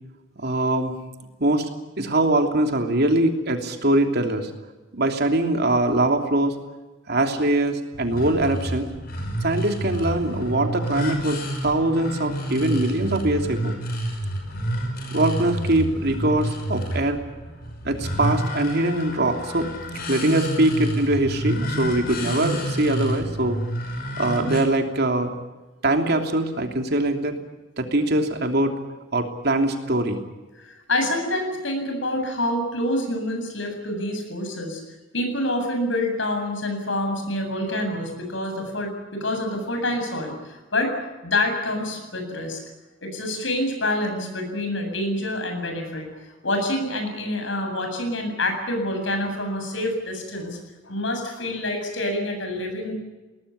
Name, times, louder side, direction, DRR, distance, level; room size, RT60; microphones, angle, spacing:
voice 1, 0.4-0.9 1.4-1.7 2.0-4.5 4.9-6.5 7.1-8.9 9.4-13.7 15.1-17.2 17.8-19.7 20.1-23.6 24.2-25.3 25.8-27.3 27.8-28.7 29.1-30.2, right 1 dB, 55° right, 4 dB, 3.0 m, -22 dB
sound 1, 7.9-24.6, right 1 dB, 50° left, 5.8 m, -29 dB
voice 2, 30.6-34.8 35.1-40.9 41.2-42.6 43.0-46.1 46.4-50.6 50.8-52.9, left 1 dB, 75° left, 4 dB, 7.8 m, -27 dB
21.5 x 19.5 x 10.0 m, 1.2 s
head